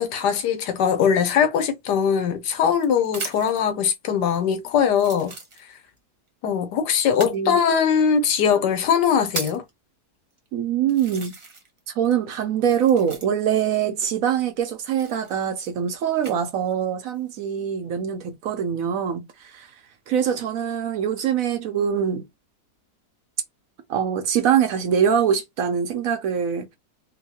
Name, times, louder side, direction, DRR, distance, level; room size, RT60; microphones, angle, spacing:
voice 1, 0.0-5.4 6.4-9.6, left 7 dB, 85° left, 1.3 m, -21 dB
sound 1, 2.0-3.7 4.3-4.4 4.9-6.0 7.1-7.4 8.3-8.4 8.9-9.7 10.4-10.5 10.9-11.8 12.0-13.6 14.8-16.4 17.0-17.5, right 3 dB, 40° right, 0.4 m, -37 dB
voice 2, 10.5-11.3 12.0-19.7 20.1-22.2 23.9-26.8, right 8 dB, 70° right, 0.9 m, -23 dB
3.8 x 2.2 x 2.8 m
omnidirectional pair, 1.7 m